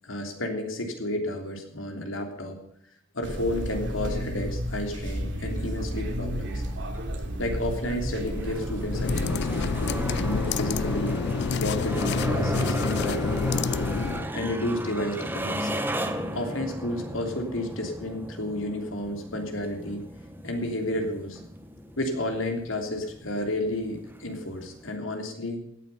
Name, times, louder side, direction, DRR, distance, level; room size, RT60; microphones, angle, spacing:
voice 1, 0.0-2.6 3.1-6.6 7.4-11.2 11.6-13.9 14.3-15.8 16.3-20.1 20.4-21.4 22.0-25.6, left 1 dB, 90° left, 4 dB, 3.2 m, -31 dB
sound 1, 3.2-10.4, equal, 65° right, 3.0 m, -32 dB
sound 2, 5.7-24.9, right 1 dB, 10° right, 1.1 m, -35 dB
sound 3, 8.9-14.3, left 5 dB, 60° left, 0.4 m, -28 dB
16.5 x 9.3 x 5.5 m, 0.72 s
head